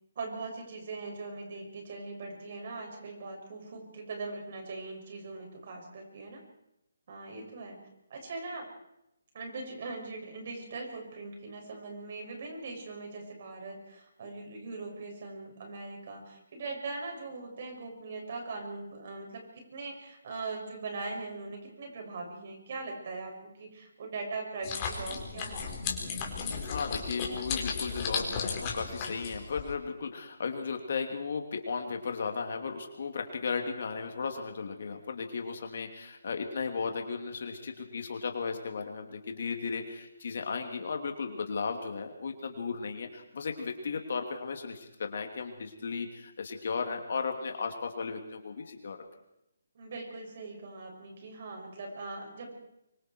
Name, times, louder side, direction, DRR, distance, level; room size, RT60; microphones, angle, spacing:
voice 1, 0.2-6.4 7.1-8.7 9.3-25.8 49.7-52.6, right 3 dB, 50° right, 2 dB, 7.1 m, -41 dB
sound 1, 24.6-29.7, left 5 dB, 25° left, 4.4 m, -35 dB
voice 2, 26.4-49.0, left 5 dB, 60° left, 4 dB, 3.1 m, -35 dB
25.0 x 24.0 x 4.8 m, 0.85 s
figure-of-eight pair, 150°, 0 cm